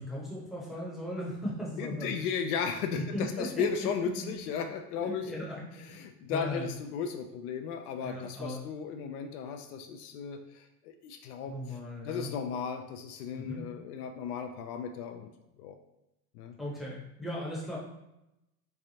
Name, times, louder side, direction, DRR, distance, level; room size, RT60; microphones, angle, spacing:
voice 1, 0.0-2.1 2.9-3.7 4.0-4.3 5.0-6.0 6.3-6.7 8.0-8.6 11.5-12.3 13.4-13.6 16.6-17.8, equal, ahead, -7 dB, 0.8 m, -37 dB
voice 2, 1.8-5.3 5.9-11.5 12.0-15.3 15.6-15.8 16.3-16.5, left 6 dB, 65° left, 5 dB, 0.5 m, -35 dB
3.3 x 3.2 x 2.8 m, 0.90 s
supercardioid pair, 130°, 49 cm